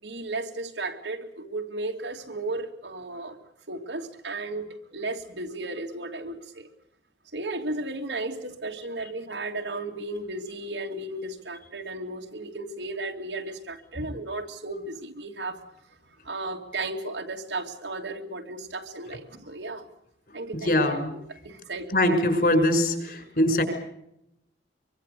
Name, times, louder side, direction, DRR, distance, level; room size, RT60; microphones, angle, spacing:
voice 1, 0.0-3.4 3.7-6.7 7.3-15.6 16.2-19.9 20.3-20.8 21.4-22.2, right 2 dB, 90° right, 2 dB, 2.7 m, -34 dB
voice 2, 20.6-21.1 21.9-23.6, left 1 dB, 55° left, 7 dB, 5.7 m, -22 dB
25.0 x 24.0 x 6.8 m, 0.80 s
head